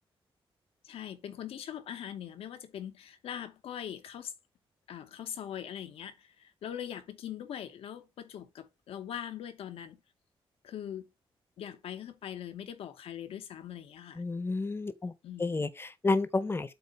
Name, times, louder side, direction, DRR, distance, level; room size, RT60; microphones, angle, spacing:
voice 1, 0.8-4.3 4.9-10.0 10.6-11.0 11.6-14.2 15.2-15.7, left 10 dB, 85° left, 1.0 m, -41 dB
voice 2, 14.2-15.1 15.4-16.7, left 3 dB, 25° left, 0.8 m, -30 dB
8.0 x 2.7 x 5.3 m
cardioid pair, 85°, 10 cm